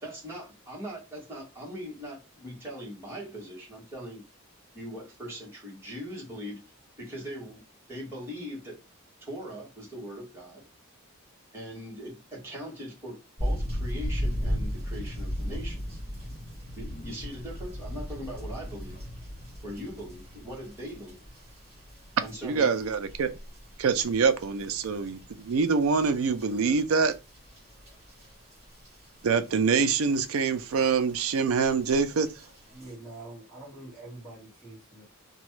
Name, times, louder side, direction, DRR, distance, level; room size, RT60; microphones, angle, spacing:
voice 1, 0.0-4.2 4.7-6.6 7.0-7.6 7.9-8.8 9.2-10.7 11.5-16.0 16.8-19.0 19.6-21.2 22.2-22.8, equal, 10° right, 1.3 m, -40 dB
sound 1, 13.4-32.9, equal, 30° right, 1.9 m, -38 dB
voice 2, 22.4-23.3 23.8-27.1 29.2-32.3, right 5 dB, 75° right, 0.4 m, -25 dB
voice 3, 32.7-35.0, right 2 dB, 5° left, 1.6 m, -45 dB
2.9 x 2.2 x 3.1 m
head